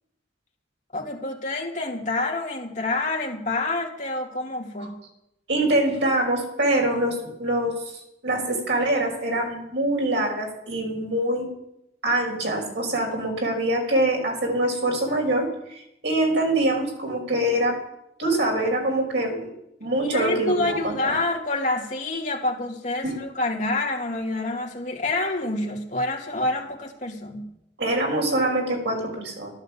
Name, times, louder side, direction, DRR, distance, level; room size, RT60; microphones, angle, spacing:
voice 1, 0.9-5.0 20.0-27.5, left 2 dB, 45° left, 0 dB, 2.6 m, -27 dB
voice 2, 5.5-7.7 8.2-11.5 12.0-17.8 18.2-19.5 19.8-21.2 23.0-23.2 27.8-29.5, right 1 dB, 75° right, 0 dB, 5.5 m, -24 dB
12.5 x 12.0 x 7.4 m, 0.80 s
head